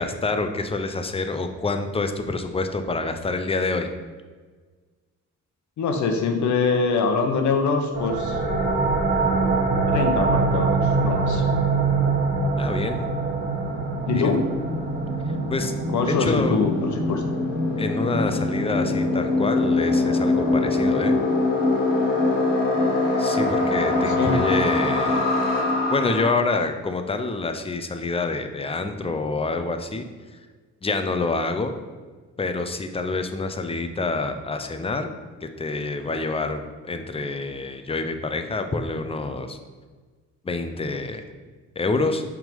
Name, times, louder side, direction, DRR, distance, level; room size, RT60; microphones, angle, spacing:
voice 1, 0.0-3.9 12.6-13.0 14.1-14.4 15.5-15.7 16.1-16.6 17.8-21.1 23.2-25.3 25.9-30.1 30.8-31.7 32.4-35.1 35.4-39.6 40.4-41.2 41.8-42.2, left 3 dB, 20° left, 7 dB, 0.6 m, -27 dB
voice 2, 5.8-8.4 9.9-11.4 14.1-14.4 15.9-17.2 24.1-24.4, left 4 dB, 70° left, 5 dB, 1.0 m, -23 dB
sound 1, 7.9-19.3, right 3 dB, 40° right, 1.4 m, -25 dB
sound 2, 11.3-26.3, left 2 dB, 90° left, 1.6 m, -24 dB
6.0 x 3.7 x 5.2 m, 1.4 s
cardioid pair, 90°, 30 cm